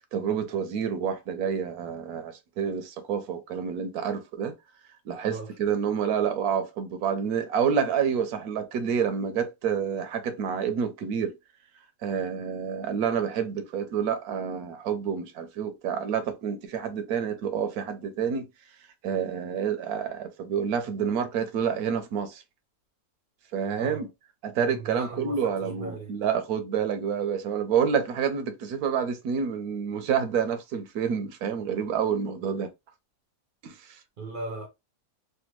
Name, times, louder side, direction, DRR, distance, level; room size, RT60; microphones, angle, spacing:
voice 1, 0.1-4.5 5.1-11.3 12.0-18.5 19.0-22.4 23.5-24.1 24.4-32.7 33.6-34.0, right 7 dB, 85° right, 1.2 m, -28 dB
voice 2, 23.8-24.1 24.6-26.2 34.2-34.7, right 2 dB, 50° right, 0.6 m, -38 dB
3.4 x 2.2 x 3.0 m
omnidirectional pair, 1.6 m